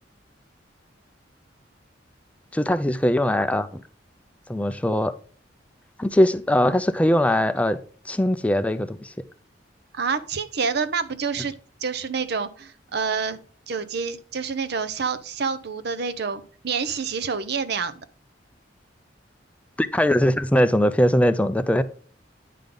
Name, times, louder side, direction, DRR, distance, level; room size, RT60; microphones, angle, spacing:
voice 1, 2.5-3.8 4.5-5.1 6.0-7.8 8.1-9.1 19.8-21.8, left 1 dB, 10° left, 11 dB, 0.4 m, -21 dB
voice 2, 9.9-11.5 11.8-13.4 13.7-18.0, right 5 dB, 65° right, 11 dB, 0.7 m, -28 dB
9.3 x 5.2 x 3.8 m, 0.42 s
head